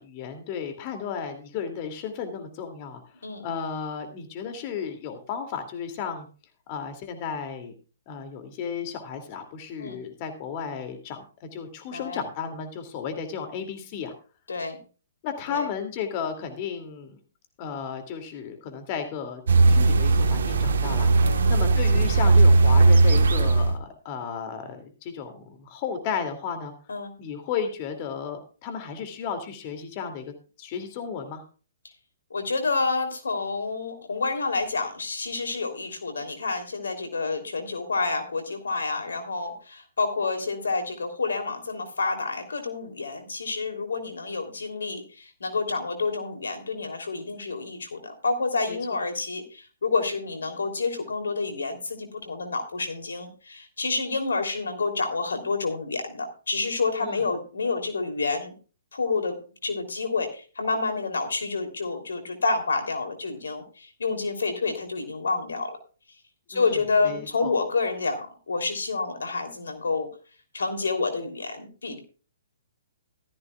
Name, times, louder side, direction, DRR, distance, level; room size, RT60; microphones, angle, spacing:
voice 1, 0.0-3.0 3.4-6.3 6.7-7.7 8.1-14.1 15.2-17.2 17.6-19.4 19.7-21.1 21.5-26.7 27.2-30.3 30.6-31.4 48.7-49.0 57.0-57.2 66.5-66.8 67.0-67.5, left 6 dB, 40° left, 7 dB, 2.5 m, -34 dB
voice 2, 14.5-14.8 15.5-15.7 21.2-21.5 26.9-27.1 32.3-58.5 58.9-59.4 59.6-65.8 66.5-70.1 70.5-72.0, left 4 dB, 75° left, 6 dB, 3.1 m, -29 dB
sound 1, 19.5-23.8, right 3 dB, 70° right, 1.3 m, -18 dB
15.5 x 13.5 x 2.4 m, 0.36 s
hypercardioid pair, 130°, 0 cm